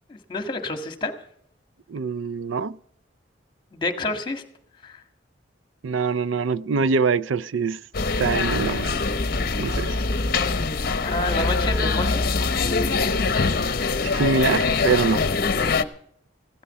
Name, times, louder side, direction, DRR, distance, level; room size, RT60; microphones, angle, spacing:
voice 1, 0.1-1.1 3.7-4.4 4.8-5.0 11.0-12.2, left 2 dB, 25° left, 1.8 m, -28 dB
voice 2, 1.9-2.8 5.8-7.8 8.2-9.0 9.6-10.0 14.0-15.3, right 5 dB, 85° right, 0.5 m, -24 dB
sound 1, 7.9-15.8, left 4 dB, 50° left, 0.9 m, -23 dB
16.5 x 12.5 x 5.7 m
head